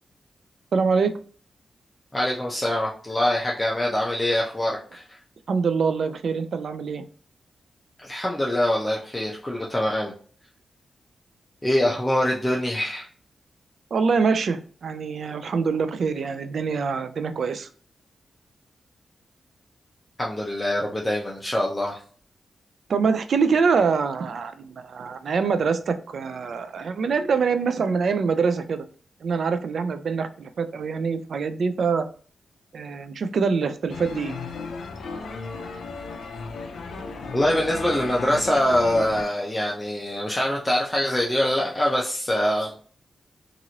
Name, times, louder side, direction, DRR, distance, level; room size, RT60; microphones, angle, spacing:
voice 1, 0.7-1.1 5.5-7.0 13.9-17.7 22.9-28.9 29.2-32.1 32.7-34.4, right 5 dB, 75° right, 10 dB, 0.3 m, -24 dB
voice 2, 2.1-5.0 8.0-10.1 11.6-13.1 20.2-22.0 37.3-42.7, left 1 dB, 15° left, -3 dB, 0.6 m, -24 dB
sound 1, 33.9-39.2, left 4 dB, 85° left, 0.4 m, -35 dB
2.9 x 2.5 x 2.7 m, 0.43 s
cardioid pair, 75°, 0 cm